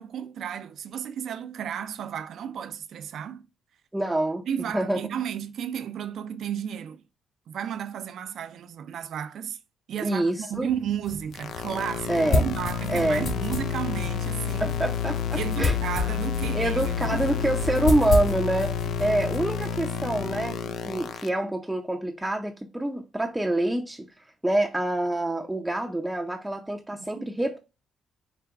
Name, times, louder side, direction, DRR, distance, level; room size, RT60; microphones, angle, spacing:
voice 1, 0.0-3.4 4.5-7.0 7.5-9.6 9.9-14.8 15.4-17.2 17.7-17.8 27.2-27.3, right 9 dB, 70° right, 0.5 m, -33 dB
voice 2, 3.9-4.4 4.7-5.0 10.0-10.7 12.1-12.5 12.9-13.3 14.6-15.7 16.5-20.6 20.9-24.1 24.4-27.6, right 1 dB, 10° right, 0.6 m, -26 dB
sound 1, 10.5-20.4, left 2 dB, 55° left, 2.2 m, -32 dB
sound 2, 11.3-21.3, left 8 dB, 70° left, 0.4 m, -30 dB
5.0 x 2.2 x 4.5 m
cardioid pair, 90°, 0 cm